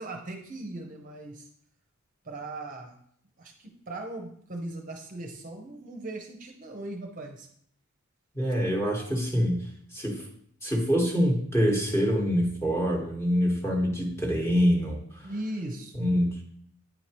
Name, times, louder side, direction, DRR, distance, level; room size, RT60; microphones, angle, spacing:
voice 1, 0.0-1.5 2.2-3.0 3.4-7.5 15.2-16.1, right 2 dB, 40° right, 2 dB, 0.7 m, -38 dB
voice 2, 8.3-9.7 9.9-10.2 10.6-15.3 16.0-16.4, equal, 10° left, -2 dB, 1.3 m, -25 dB
9.0 x 4.7 x 2.9 m, 0.65 s
head